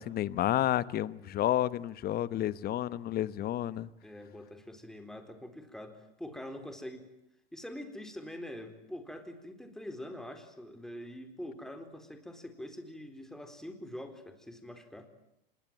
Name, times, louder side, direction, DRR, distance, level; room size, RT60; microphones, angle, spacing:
voice 1, 0.0-3.9, left 13 dB, 30° left, 18 dB, 1.1 m, -30 dB
voice 2, 4.0-7.1 7.5-15.1, left 1 dB, ahead, 7 dB, 4.1 m, -44 dB
26.0 x 22.0 x 9.3 m, 0.80 s
hypercardioid pair, 120°, 30 cm